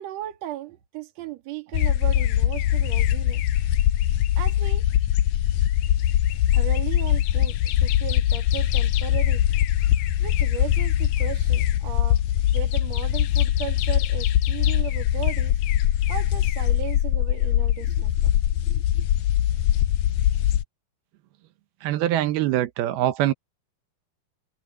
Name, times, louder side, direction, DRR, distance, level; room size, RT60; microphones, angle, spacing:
voice 1, 0.0-3.4 4.4-4.9 6.5-9.4 10.2-12.2 12.5-15.6 16.1-18.3 18.7-19.1, right 12 dB, 55° right, 2.5 m, -36 dB
sound 1, 1.7-20.6, left 12 dB, 80° left, 1.7 m, -22 dB
voice 2, 21.8-23.3, right 13 dB, 85° right, 3.0 m, -23 dB
omnidirectional pair, 4.3 m